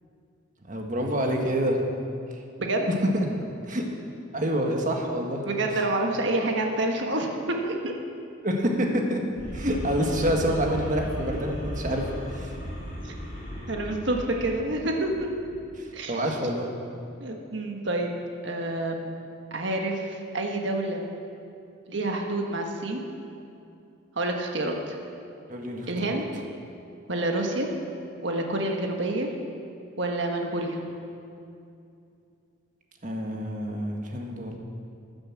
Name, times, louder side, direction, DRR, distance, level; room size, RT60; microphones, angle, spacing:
voice 1, 0.6-1.9 2.3-2.4 3.1-3.2 3.7-3.9 4.3-5.4 8.4-9.2 9.5-12.0 12.3-12.5 15.8-16.7 25.5-26.1 33.0-34.6, equal, 40° right, 1 dB, 1.7 m, -27 dB
voice 2, 2.6-3.0 5.4-7.9 13.0-13.1 13.7-15.3 15.9-16.2 17.2-18.1 18.4-19.1 19.5-21.0 21.9-23.0 24.1-25.0 25.9-26.5 27.1-27.7 28.2-29.3 30.0-30.8, right 2 dB, 65° right, 2 dB, 1.4 m, -28 dB
sound 1, 9.4-15.6, equal, 40° left, 4.3 m, -36 dB
14.0 x 9.7 x 7.4 m, 2.6 s
head